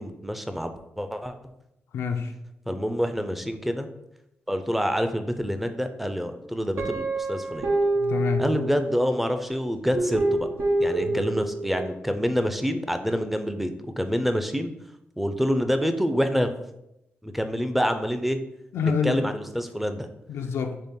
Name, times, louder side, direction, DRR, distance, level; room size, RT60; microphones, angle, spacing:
voice 1, 0.0-1.3 2.7-3.9 4.5-7.7 8.4-10.5 10.8-14.7 15.2-16.5 17.2-18.4 18.8-20.1, equal, 5° right, 8 dB, 0.4 m, -27 dB
voice 2, 1.9-2.3 8.0-8.5 11.0-11.2 18.7-19.2 20.3-20.8, left 6 dB, 90° left, 5 dB, 0.4 m, -27 dB
Guitar, 6.8-9.2 9.9-11.9, right 2 dB, 85° right, 1.0 m, -27 dB
4.2 x 3.3 x 3.7 m, 0.85 s
cardioid pair, 85°, 4 cm